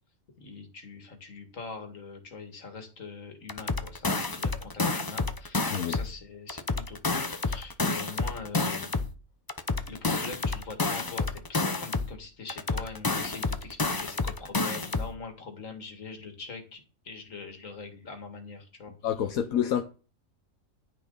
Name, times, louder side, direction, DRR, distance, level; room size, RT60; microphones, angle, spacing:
voice 1, 0.4-8.9 9.8-19.3, left 4 dB, 70° left, 2.4 m, -43 dB
sound 1, 3.5-6.2 6.5-9.2 9.5-12.2 12.5-15.2, left 3 dB, 25° left, 0.6 m, -29 dB
voice 2, 19.0-19.8, left 9 dB, 85° left, 1.3 m, -27 dB
11.0 x 9.9 x 4.0 m
omnidirectional pair, 1.4 m